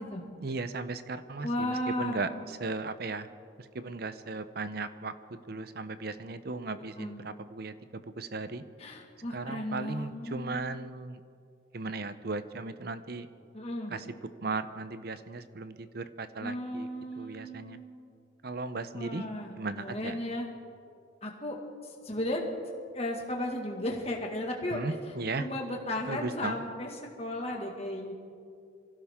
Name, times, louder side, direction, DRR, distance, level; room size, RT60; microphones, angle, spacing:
voice 1, 0.4-3.3 3.6-8.6 9.3-11.2 11.7-13.3 13.9-14.1 14.4-16.9 17.2-17.8 18.4-19.2 19.6-20.2 24.7-25.5 26.1-26.6, right 3 dB, 50° right, 12 dB, 0.7 m, -36 dB
voice 2, 1.4-2.4 7.0-7.2 8.8-10.9 13.5-13.9 16.4-18.0 18.9-19.5 19.8-20.5 21.2-21.6 21.8-22.4 22.9-24.9 25.4-26.9 27.2-28.1, left 1 dB, 30° left, 0 dB, 1.9 m, -35 dB
24.0 x 16.0 x 3.7 m, 2.4 s
head